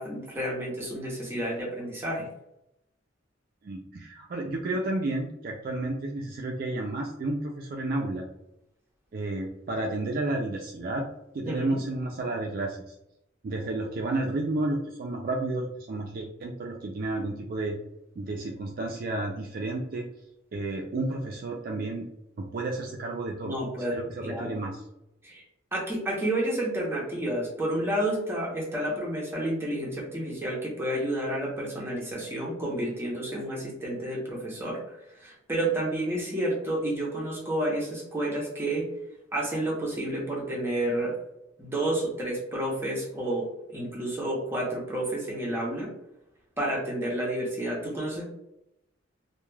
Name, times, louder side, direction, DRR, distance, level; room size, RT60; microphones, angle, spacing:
voice 1, 0.0-2.3 11.4-11.8 23.4-24.0 24.2-24.6 25.2-25.4 25.7-34.8 35.2-38.9 39.3-41.2 41.6-45.9 46.6-48.3, right 1 dB, 10° right, -3 dB, 0.7 m, -30 dB
voice 2, 3.6-8.3 9.1-11.1 11.3-12.9 13.4-17.8 18.2-20.1 20.5-22.1 22.4-23.5 23.9-24.8, right 2 dB, 50° right, 1 dB, 0.3 m, -31 dB
2.3 x 2.1 x 3.1 m, 0.82 s
head